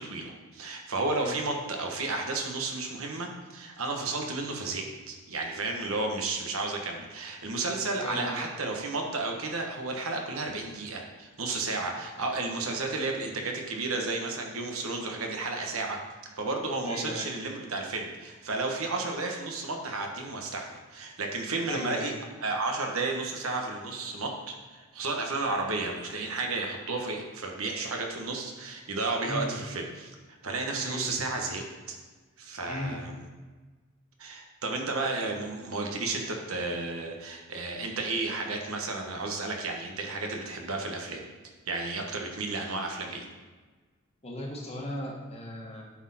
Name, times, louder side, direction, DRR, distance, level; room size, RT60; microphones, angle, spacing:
voice 1, 0.0-16.0 16.4-22.1 22.4-30.1 30.4-32.0 32.4-33.1 34.2-41.2 41.7-43.3, right 3 dB, 75° right, 2 dB, 1.3 m, -32 dB
voice 2, 8.0-8.4 16.8-17.3 21.7-22.1 29.2-29.6 30.7-31.1 32.7-33.0 44.2-45.9, left 1 dB, 30° left, -1 dB, 1.4 m, -37 dB
11.5 x 4.4 x 4.2 m, 1.3 s
head